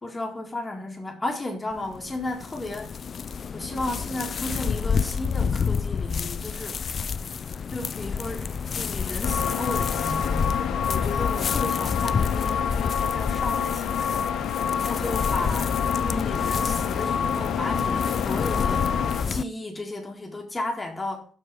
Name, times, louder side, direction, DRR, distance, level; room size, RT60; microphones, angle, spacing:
voice 1, 0.0-3.0 3.5-6.8 7.7-14.3 14.9-15.7 16.0-21.3, left 2 dB, 20° left, 1 dB, 1.6 m, -34 dB
sound 1, 1.7-19.4, left 6 dB, 45° left, 0.3 m, -29 dB
sound 2, 9.2-19.2, left 8 dB, 80° left, 1.0 m, -28 dB
6.5 x 4.6 x 5.6 m, 0.41 s
cardioid pair, 90°, 0 cm